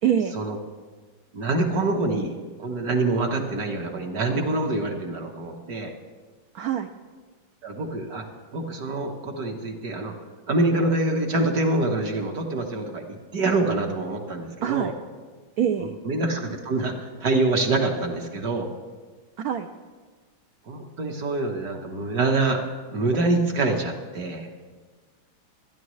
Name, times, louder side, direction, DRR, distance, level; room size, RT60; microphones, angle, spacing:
voice 1, 0.0-0.4 6.5-6.9 14.6-14.9 15.6-16.0 19.4-19.7, right 9 dB, 85° right, 8 dB, 0.8 m, -24 dB
voice 2, 1.3-2.3 2.6-5.9 7.6-8.2 8.5-10.1 10.5-14.9 15.8-18.7 20.7-22.6 22.9-24.5, right 2 dB, 55° right, 3 dB, 1.6 m, -25 dB
25.5 x 10.0 x 3.2 m, 1.4 s
omnidirectional pair, 2.2 m